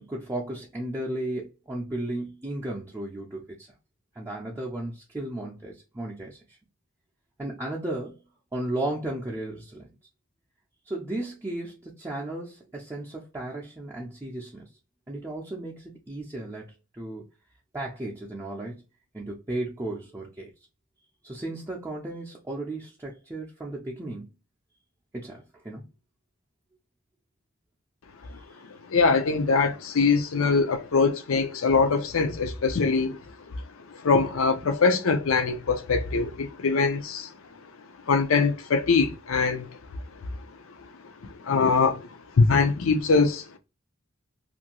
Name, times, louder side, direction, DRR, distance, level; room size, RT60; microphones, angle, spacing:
voice 1, 0.0-3.7 4.1-6.4 7.4-8.2 8.5-9.9 10.9-14.7 15.1-17.2 17.7-18.8 19.1-20.5 21.2-24.3 25.1-25.9, right 1 dB, 15° right, 0.5 m, -34 dB
voice 2, 28.7-33.2 33.9-37.3 38.1-39.8 41.4-42.1 42.4-43.6, left 4 dB, 70° left, 0.6 m, -23 dB
2.7 x 2.5 x 2.9 m
head